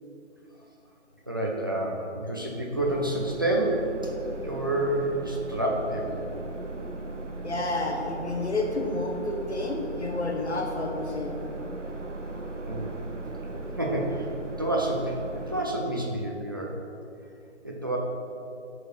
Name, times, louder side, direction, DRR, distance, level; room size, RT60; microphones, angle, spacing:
voice 1, 1.3-3.9 4.4-6.1 12.6-12.9 13.8-14.3 14.6-15.1 15.5-16.8 17.6-18.0, right 1 dB, 20° right, -2 dB, 0.6 m, -28 dB
sound 1, 2.8-15.6, right 2 dB, 80° right, 1.2 m, -37 dB
voice 2, 7.4-11.4, left 2 dB, 65° left, 1 dB, 1.6 m, -30 dB
12.0 x 4.9 x 4.6 m, 2.6 s
figure-of-eight pair, 150°, 36 cm